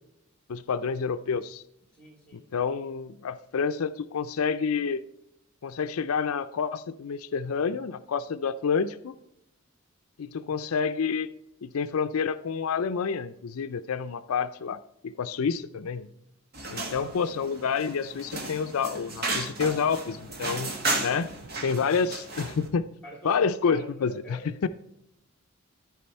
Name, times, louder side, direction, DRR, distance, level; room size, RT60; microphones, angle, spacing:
voice 1, 0.5-1.6 2.5-5.0 5.6-9.1 10.2-11.3 11.6-16.1 16.7-20.7 21.0-21.3 21.6-22.9 23.2-24.7, left 6 dB, 80° left, 11 dB, 0.4 m, -28 dB
voice 2, 1.9-2.4 16.8-17.1 23.0-24.4, left 1 dB, 5° left, 0 dB, 3.3 m, -46 dB
sound 1, 16.5-22.7, right 2 dB, 45° right, 1.6 m, -34 dB
13.5 x 4.7 x 4.3 m, 0.80 s
head